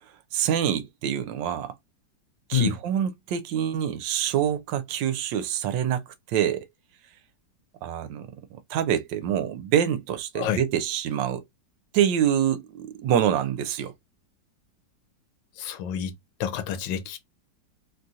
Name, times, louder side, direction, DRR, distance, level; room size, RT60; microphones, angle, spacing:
voice 1, 0.3-1.7 2.5-6.7 7.8-11.4 11.9-13.9, right 9 dB, 80° right, 1.3 m, -26 dB
voice 2, 15.6-16.1 16.4-17.2, left 9 dB, 85° left, 1.3 m, -27 dB
3.2 x 2.3 x 2.6 m
omnidirectional pair, 2.0 m